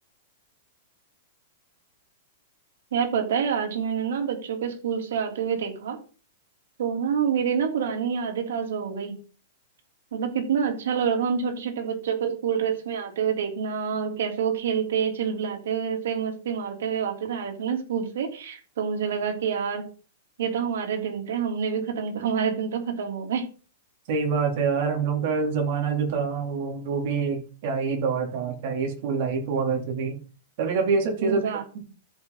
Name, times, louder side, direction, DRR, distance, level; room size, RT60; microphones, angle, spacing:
voice 1, 2.9-6.0 6.8-9.1 10.1-19.8 20.4-23.5 31.2-31.6, right 7 dB, 70° right, 3 dB, 3.3 m, -27 dB
voice 2, 24.1-30.1 30.6-31.4, right 5 dB, 40° right, 2 dB, 3.3 m, -26 dB
14.0 x 5.8 x 4.1 m, 0.36 s
supercardioid pair, 170°, 0 cm